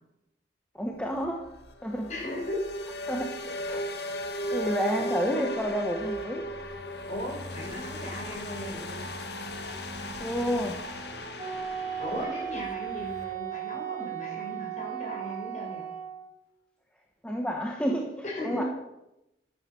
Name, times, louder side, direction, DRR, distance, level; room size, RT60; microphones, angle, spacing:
voice 1, 0.7-1.4 1.8-2.1 3.1-3.4 3.7-4.1 4.5-6.5 10.2-10.8 17.2-18.1 18.4-18.6, equal, 5° left, 1 dB, 1.1 m, -30 dB
sound 1, 0.9-13.3, equal, 65° left, 1.8 m, -37 dB
voice 2, 2.1-2.6 4.9-5.1 5.3-5.5 7.1-9.0 12.0-15.8 18.2-18.7, left 1 dB, 40° left, -1 dB, 6.0 m, -37 dB
Wind instrument woodwind instrument, 11.4-16.3, right 10 dB, 15° right, 4.9 m, -36 dB
13.0 x 11.0 x 6.9 m, 0.90 s
head